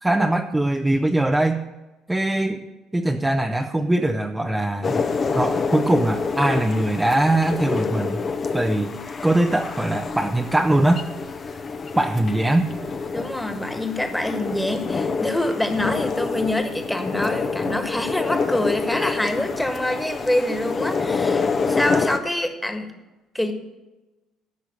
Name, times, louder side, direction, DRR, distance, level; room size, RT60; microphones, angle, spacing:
voice 1, 0.0-1.6 2.1-2.6 2.9-5.0 5.3-8.2 8.5-9.0 9.2-11.0 11.9-12.7, right 1 dB, 10° right, 4 dB, 0.8 m, -21 dB
sound 1, 4.8-22.2, left 4 dB, 35° left, 0.9 m, -27 dB
voice 2, 13.1-22.9 23.3-23.5, left 1 dB, 5° left, 6 dB, 1.7 m, -25 dB
13.5 x 6.0 x 6.8 m, 1.1 s
figure-of-eight pair, 50°, 0 cm